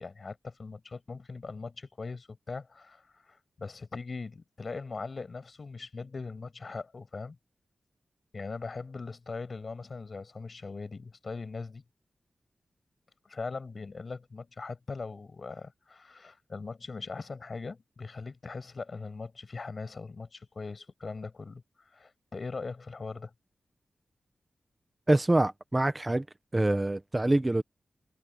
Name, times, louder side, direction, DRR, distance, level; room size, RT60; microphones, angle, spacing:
voice 1, 0.0-7.4 8.3-11.8 13.2-21.6 21.9-23.3, left 4 dB, 45° left, 6.4 m, -40 dB
voice 2, 25.1-26.2 26.5-27.6, right 1 dB, 20° right, 0.8 m, -25 dB
wide cardioid pair, 125°, 0 cm